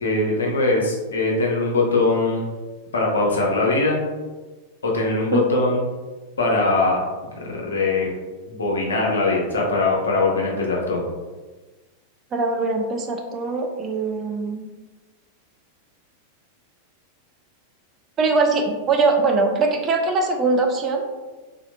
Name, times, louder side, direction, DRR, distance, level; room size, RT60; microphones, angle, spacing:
voice 1, 0.0-2.5 2.9-4.0 4.8-5.8 6.4-7.0 7.4-8.1 8.5-11.1, left 2 dB, 70° left, -2 dB, 0.7 m, -21 dB
voice 2, 12.3-14.6 18.2-21.0, right 3 dB, 30° right, 3 dB, 0.4 m, -22 dB
3.3 x 2.8 x 2.2 m, 1.2 s
figure-of-eight pair, 90°, 0 cm